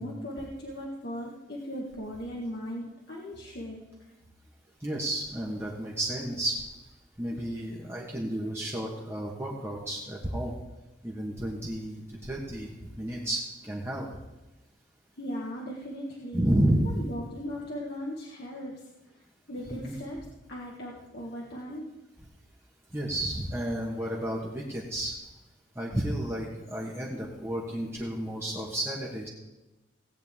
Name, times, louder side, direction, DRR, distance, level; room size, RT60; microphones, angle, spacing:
voice 1, 0.0-3.8 15.2-16.5 16.8-18.8 19.5-20.2 20.5-21.8, equal, 55° left, -3 dB, 1.7 m, -38 dB
voice 2, 4.8-6.6 7.2-10.5 11.0-14.1 16.3-17.0 19.7-19.9 22.9-25.1 25.7-29.3, right 1 dB, 15° right, -3 dB, 1.5 m, -31 dB
18.0 x 8.8 x 3.7 m, 1.1 s
head